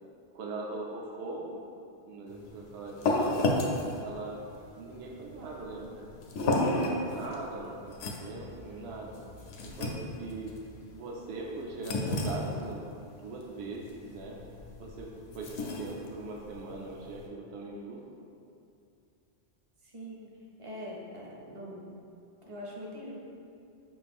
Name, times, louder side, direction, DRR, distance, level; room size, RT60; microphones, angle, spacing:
voice 1, 0.3-1.6 2.0-3.5 4.0-4.4 4.7-6.1 6.5-7.9 8.2-9.2 9.6-10.5 10.9-12.9 13.2-14.3 14.8-15.1 15.3-18.0, right 3 dB, 75° right, -1 dB, 0.8 m, -40 dB
sound 1, 2.3-17.3, left 2 dB, 75° left, 0.8 m, -34 dB
voice 2, 19.8-20.3 20.6-21.9 22.4-23.2, equal, 35° right, -3 dB, 0.6 m, -43 dB
5.4 x 2.5 x 3.4 m, 2.5 s
omnidirectional pair, 1.1 m